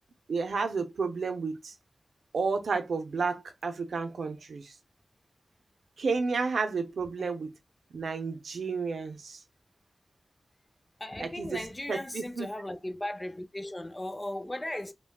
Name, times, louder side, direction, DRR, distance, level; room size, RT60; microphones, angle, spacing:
voice 1, 0.3-1.7 2.3-4.8 6.0-7.5 7.9-9.4 11.2-12.5, right 4 dB, 90° right, 0.6 m, -31 dB
voice 2, 11.0-14.9, left 1 dB, 20° left, 0.5 m, -37 dB
3.4 x 2.2 x 2.2 m
cardioid pair, 60°, 0 cm